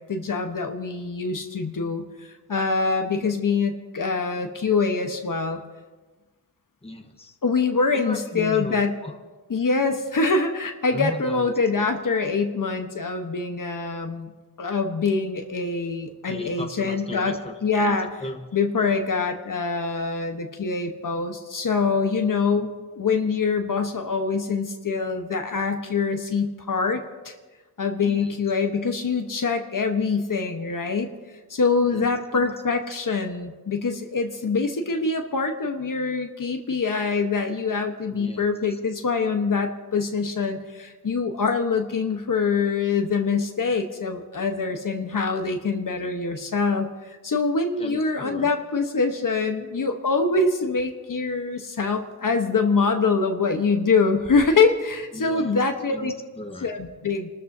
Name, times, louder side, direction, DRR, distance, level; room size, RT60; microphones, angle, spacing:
voice 1, 0.1-5.6 7.4-8.9 9.5-14.3 14.6-17.4 17.6-18.1 18.5-27.3 27.8-31.1 31.5-56.1 56.6-57.3, left 4 dB, 55° left, 5 dB, 1.2 m, -24 dB
voice 2, 6.8-7.4 7.9-9.1 10.9-11.9 16.3-18.4 18.8-19.0 22.5-22.7 28.0-28.4 31.9-32.1 32.3-32.5 38.1-38.4 47.8-48.5 55.1-55.6 55.9-56.7, left 2 dB, 15° left, 4 dB, 1.3 m, -36 dB
29.0 x 13.0 x 2.8 m, 1.3 s
wide cardioid pair, 95°, 39 cm